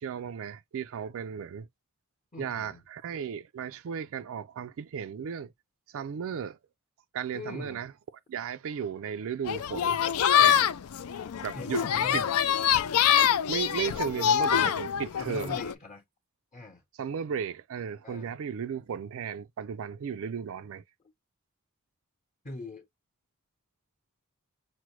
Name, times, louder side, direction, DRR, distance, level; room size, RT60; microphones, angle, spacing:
voice 1, 0.0-1.7 2.4-5.5 5.9-6.6 7.1-7.9 8.3-10.0 10.4-10.7 11.4-11.8 12.1-12.2 13.5-15.6 17.0-20.8, right 7 dB, 65° right, 0.4 m, -35 dB
voice 2, 2.3-2.8 7.3-7.8 11.5-12.3 15.2-16.0 16.5-16.8 18.0-18.3 22.4-22.8, left 2 dB, 35° left, 0.9 m, -41 dB
sound 1, 9.4-15.7, left 9 dB, 75° left, 0.4 m, -25 dB
6.0 x 2.1 x 3.0 m
head